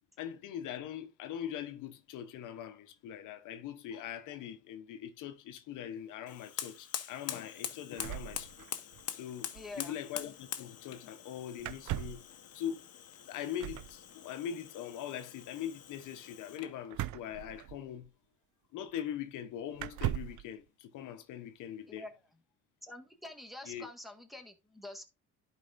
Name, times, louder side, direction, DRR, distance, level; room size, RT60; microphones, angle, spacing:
voice 1, 0.2-8.5 9.1-12.2 12.5-12.8 13.3-18.1 18.7-22.0 23.6-23.9, left 10 dB, 90° left, 0.9 m, -42 dB
Fire, 6.2-16.8, left 9 dB, 55° left, 0.9 m, -45 dB
sound 1, 8.0-9.0 9.3-9.4 9.5-9.8 11.6-12.3 13.6-13.9 16.9-18.1 18.9-19.0 19.7-20.4, right 15 dB, 75° right, 0.5 m, -38 dB
voice 2, 9.5-10.0 21.9-22.1 22.8-25.1, left 2 dB, ahead, 1.5 m, -46 dB
11.5 x 4.9 x 2.5 m
cardioid pair, 90°, 30 cm